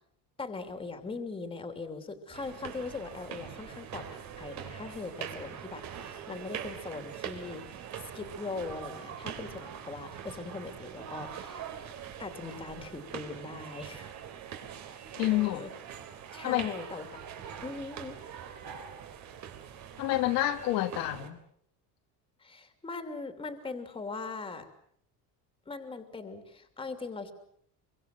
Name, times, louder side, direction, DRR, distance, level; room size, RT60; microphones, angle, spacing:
voice 1, 0.4-11.6 12.2-14.1 14.9-15.7 16.3-17.1 17.6-18.2 22.4-24.7 25.7-27.3, left 3 dB, 15° left, 8 dB, 2.9 m, -40 dB
sound 1, 2.3-21.3, right 8 dB, 50° right, 3.8 m, -43 dB
voice 2, 15.2-15.6 16.4-16.7 20.0-21.4, left 15 dB, 65° left, 6 dB, 1.9 m, -28 dB
25.5 x 24.5 x 7.7 m, 0.65 s
cardioid pair, 165°, 37 cm